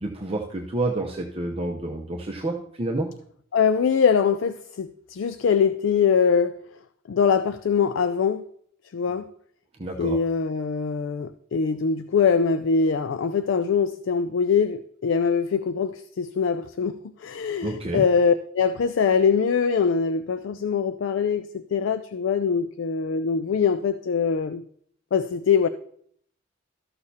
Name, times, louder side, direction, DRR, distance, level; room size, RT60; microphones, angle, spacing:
voice 1, 0.0-3.1 9.8-10.2 17.6-18.0, right 2 dB, 30° right, 0 dB, 0.7 m, -29 dB
voice 2, 3.5-6.6 7.1-8.4 8.9-9.3 10.0-24.6 25.1-25.7, left 6 dB, 65° left, 11 dB, 0.4 m, -23 dB
13.0 x 6.5 x 2.8 m, 0.64 s
head